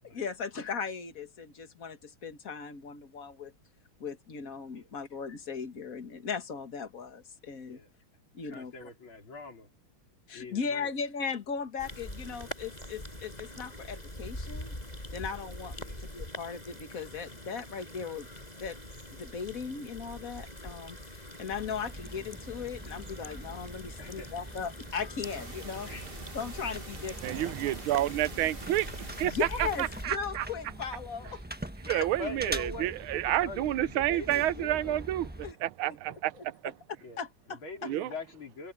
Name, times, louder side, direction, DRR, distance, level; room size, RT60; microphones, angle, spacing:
voice 1, 0.0-3.5 4.0-7.8 8.3-8.9 10.3-14.7 15.1-15.7 16.0-18.3 18.6-18.8 19.2-25.9 26.3-27.6 29.2-31.4 31.9-32.1 35.4-35.6 35.8-36.4 37.2-37.9, left 6 dB, 40° left, 2.2 m, -38 dB
voice 2, 8.5-9.7 10.3-10.9 15.8-16.0 24.0-24.3 25.9-26.1 31.2-31.3 32.2-35.0 37.0-37.2 37.5-38.7, left 3 dB, 70° left, 4.9 m, -43 dB
sound 1, 11.8-30.0, left 1 dB, 20° left, 6.8 m, -44 dB
sound 2, 21.5-35.5, right 1 dB, 5° right, 1.0 m, -43 dB
sound 3, 25.2-29.2, right 3 dB, 25° right, 1.9 m, -46 dB
voice 3, 27.2-30.5 31.8-35.3 35.6-36.7 37.8-38.1, right 14 dB, 90° right, 1.5 m, -30 dB
omnidirectional pair, 2.3 m